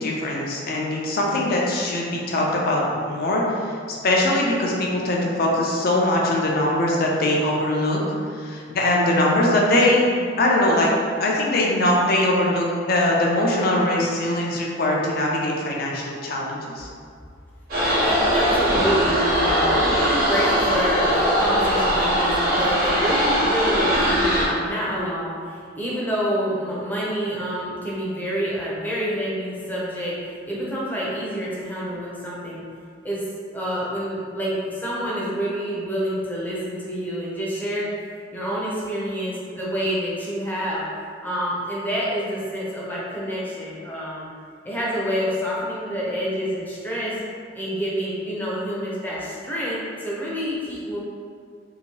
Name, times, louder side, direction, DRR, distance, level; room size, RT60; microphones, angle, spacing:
voice 1, 0.0-3.4 3.9-8.0 8.4-10.9 11.2-16.9, left 1 dB, 50° left, -2 dB, 0.5 m, -21 dB
sound 1, 17.7-24.5, equal, 50° right, 1.0 m, -20 dB
voice 2, 17.8-30.2 30.5-32.6 33.0-37.9 38.3-40.9 41.2-44.3 44.6-47.1 47.5-51.0, equal, 10° left, -7 dB, 0.6 m, -27 dB
2.9 x 2.6 x 2.9 m, 2.2 s
head